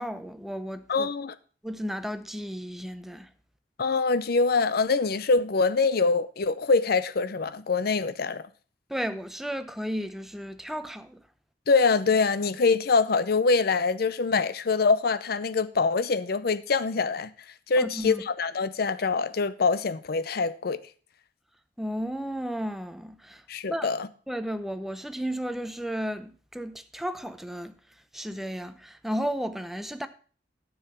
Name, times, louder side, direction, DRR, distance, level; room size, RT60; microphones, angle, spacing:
voice 1, 0.0-1.1 1.6-3.3 8.9-11.2 17.8-18.2 21.8-23.4 23.7-23.9 24.3-27.8 28.1-30.1, equal, ahead, 0.7 m, -33 dB
voice 2, 0.9-1.4 3.8-8.5 11.7-17.3 17.7-20.8 23.5-24.1, left 4 dB, 60° left, 0.6 m, -24 dB
9.8 x 7.2 x 5.6 m
head